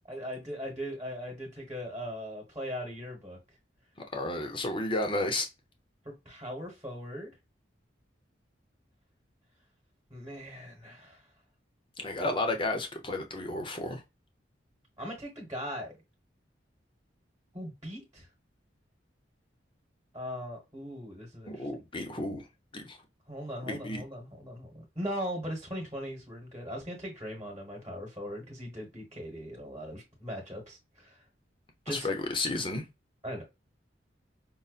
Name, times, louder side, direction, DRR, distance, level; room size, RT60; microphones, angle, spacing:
voice 1, 0.1-3.4 6.2-7.3 10.1-11.2 15.0-15.9 17.5-18.3 20.1-21.7 23.3-24.7 24.9-31.2 31.8-32.1 33.2-33.4, equal, 20° right, 1.2 m, -39 dB
voice 2, 4.1-5.5 12.0-14.0 21.5-22.5 22.7-23.0 23.7-24.0 31.9-32.9, left 2 dB, 30° left, 0.7 m, -32 dB
5.5 x 2.1 x 2.4 m
head